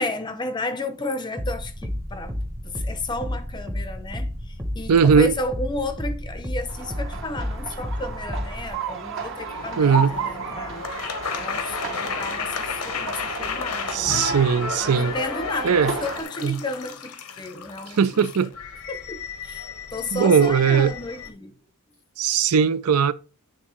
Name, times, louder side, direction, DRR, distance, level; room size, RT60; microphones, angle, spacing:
voice 1, 0.0-2.4 2.6-10.9 11.4-14.2 14.8-18.2 18.9-21.6, left 2 dB, 20° left, 0.5 m, -32 dB
sound 1, 1.4-8.7, left 1 dB, 15° right, 0.8 m, -31 dB
voice 2, 4.9-5.3 9.8-10.1 13.9-15.1 15.6-15.9 16.4-16.6 18.0-18.5 20.1-20.9 22.2-23.1, right 6 dB, 80° right, 0.5 m, -19 dB
sound 2, 6.7-16.2, right 4 dB, 60° right, 1.6 m, -33 dB
sound 3, 9.5-21.3, left 6 dB, 85° left, 0.8 m, -33 dB
9.1 x 3.7 x 3.0 m
head